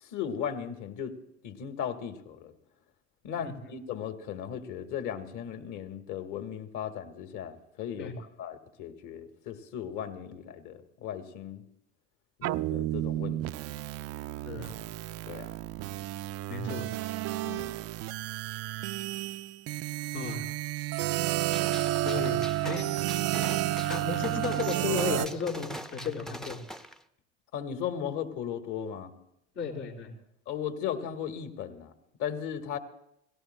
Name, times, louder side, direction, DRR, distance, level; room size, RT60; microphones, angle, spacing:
voice 1, 0.0-1.2 1.4-2.5 3.2-11.6 12.4-13.4 13.7-13.8 15.3-15.5 17.4-17.7 27.5-29.1 30.5-31.9 32.2-32.8, left 8 dB, 55° left, 8 dB, 1.6 m, -37 dB
sound 1, 12.4-25.3, right 15 dB, 40° right, 0.5 m, -31 dB
voice 2, 16.5-16.8 20.1-20.5 22.0-22.9 23.9-26.6 29.6-30.1, left 5 dB, 85° left, -4 dB, 3.5 m, -34 dB
Gunshot gunfire, 21.5-27.0, equal, ahead, 0.6 m, -43 dB
29.5 x 17.5 x 2.2 m, 0.81 s
hypercardioid pair, 75°, 37 cm